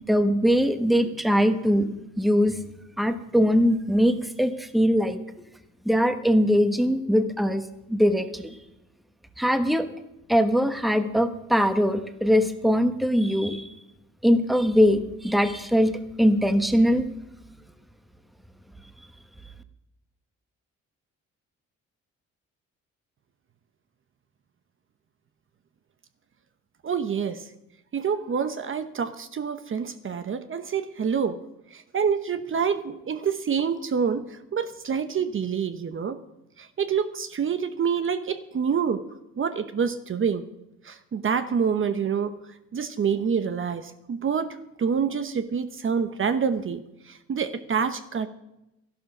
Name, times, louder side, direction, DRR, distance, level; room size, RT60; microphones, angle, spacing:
voice 1, 0.0-1.9 2.2-2.6 3.0-5.2 5.8-7.6 7.9-8.6 9.4-9.9 10.3-13.7 14.2-17.1, equal, ahead, 9 dB, 1.1 m, -21 dB
voice 2, 26.8-27.5 27.9-31.4 31.7-36.2 36.6-39.0 39.4-40.4 40.8-42.3 42.7-46.8 47.1-48.3, right 6 dB, 40° right, 10 dB, 0.9 m, -27 dB
13.0 x 11.5 x 6.0 m, 0.90 s
cardioid pair, 90°, 30 cm